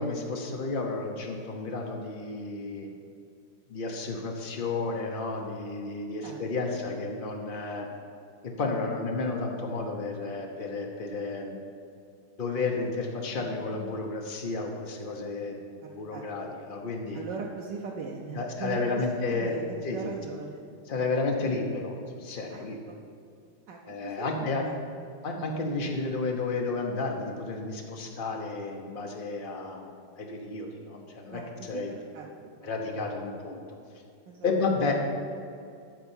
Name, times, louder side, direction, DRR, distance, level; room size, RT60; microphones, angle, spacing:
voice 1, 0.0-2.9 3.7-7.9 8.4-11.6 12.4-17.2 18.3-19.6 19.8-20.1 20.9-22.8 23.8-24.7 25.2-31.9 32.6-33.6 34.4-34.9, left 3 dB, 85° left, 1 dB, 0.4 m, -32 dB
voice 2, 6.2-6.7 15.8-16.3 17.1-20.6 22.5-23.0 23.7-24.7 31.3-31.8 32.1-32.7 34.3-34.5, right 4 dB, 65° right, 0 dB, 1.2 m, -39 dB
10.5 x 4.4 x 7.2 m, 2.4 s
omnidirectional pair, 2.3 m